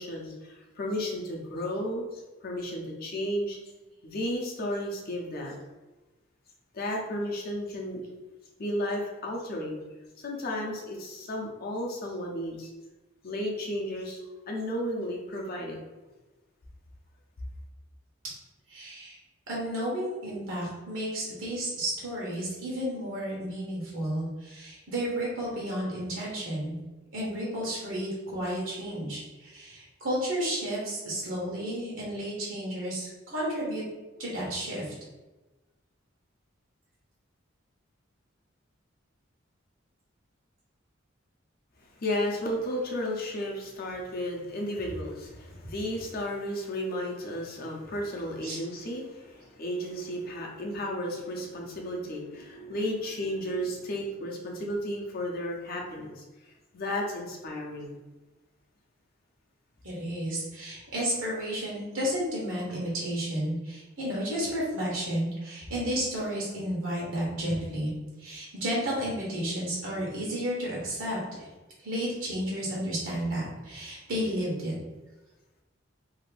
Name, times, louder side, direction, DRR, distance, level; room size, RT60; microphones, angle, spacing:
voice 1, 0.0-3.6 4.0-5.6 6.7-8.0 8.6-9.8 10.2-12.7 13.2-14.2 14.5-15.8 42.0-56.2 56.7-57.9, equal, 50° left, -1 dB, 0.6 m, -33 dB
voice 2, 18.7-19.2 19.5-26.7 27.1-33.8 34.2-34.9 48.4-48.6 59.8-67.9 68.2-71.5 71.8-74.7, equal, 80° right, -4 dB, 1.0 m, -32 dB
2.8 x 2.5 x 3.3 m, 1.1 s
head